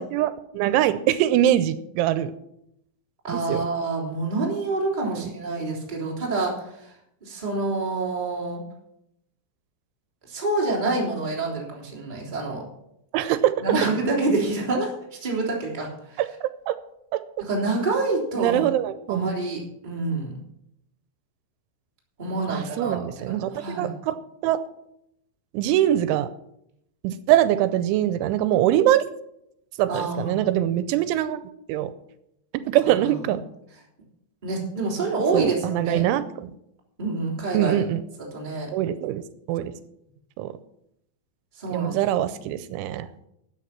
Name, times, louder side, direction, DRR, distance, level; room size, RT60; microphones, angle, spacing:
voice 1, 0.0-2.3 3.3-3.7 5.1-5.3 13.1-13.5 16.2-16.8 18.4-19.3 22.5-23.5 23.8-24.2 24.4-24.6 25.5-26.3 27.0-29.0 29.8-31.4 31.7-31.9 32.7-33.4 35.3-36.5 37.5-38.0 38.7-39.2 39.5-39.7 40.4-40.5 41.7-43.1, right 12 dB, 85° right, 13 dB, 3.0 m, -23 dB
voice 2, 3.2-6.9 7.2-8.6 10.3-12.6 13.6-16.2 17.4-18.6 19.1-20.3 22.2-23.9 29.9-30.4 32.8-33.2 34.4-36.0 37.0-37.8 38.3-38.7 41.6-41.9, right 3 dB, 15° right, -2 dB, 2.4 m, -27 dB
13.5 x 8.4 x 5.9 m, 0.79 s
omnidirectional pair, 5.4 m